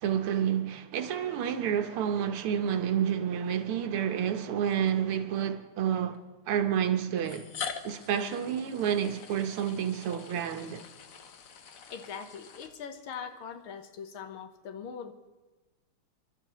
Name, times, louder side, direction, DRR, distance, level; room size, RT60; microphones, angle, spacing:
voice 1, 0.0-6.2 6.5-7.5 7.8-10.9, right 9 dB, 85° right, 1.8 m, -29 dB
sound 1, 3.7-3.9 4.9-5.0 6.1-6.2 7.2-13.2, left 6 dB, 60° left, 0.9 m, -44 dB
voice 2, 11.9-15.1, left 7 dB, 75° left, 1.8 m, -41 dB
27.0 x 12.0 x 3.0 m
omnidirectional pair, 2.4 m